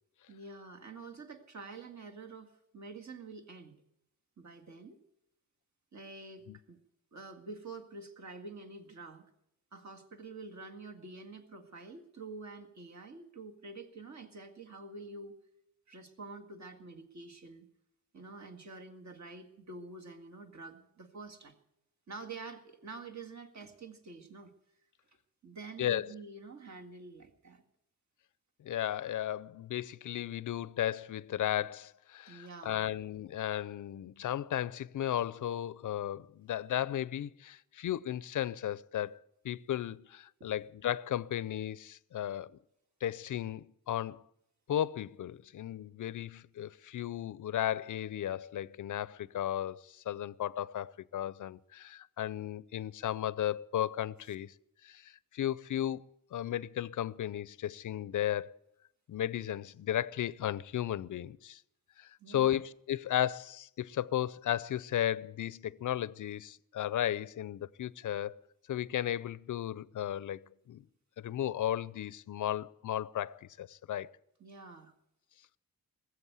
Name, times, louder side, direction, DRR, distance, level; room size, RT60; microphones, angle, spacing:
voice 1, 0.3-3.7 4.4-5.0 5.9-6.8 7.1-9.3 9.7-15.3 15.9-17.7 18.1-21.6 22.1-24.5 25.4-27.6 32.3-32.9 40.4-40.5 62.2-62.6 74.4-74.9, right 3 dB, 50° right, 2.0 m, -47 dB
voice 2, 28.6-39.2 39.4-42.6 43.0-44.2 44.7-54.5 54.8-56.0 56.3-58.6 59.1-61.6 62.0-68.4 68.7-70.8 71.2-74.1, left 11 dB, 60° left, 0.5 m, -35 dB
19.5 x 8.0 x 8.1 m
wide cardioid pair, 120°, 36 cm